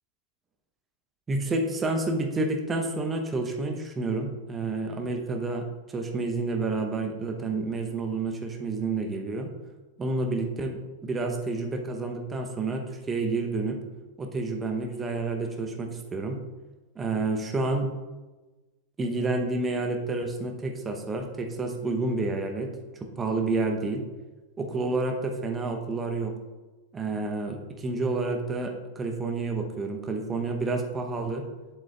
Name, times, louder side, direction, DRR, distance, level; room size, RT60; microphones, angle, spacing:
voice 1, 1.3-9.5 10.0-13.8 14.2-16.4 17.0-17.9 19.0-22.7 23.0-24.0 24.6-26.3 26.9-31.5, right 3 dB, 20° right, 3 dB, 1.0 m, -29 dB
7.8 x 7.7 x 2.5 m, 1.2 s
figure-of-eight pair, 90°, 0 cm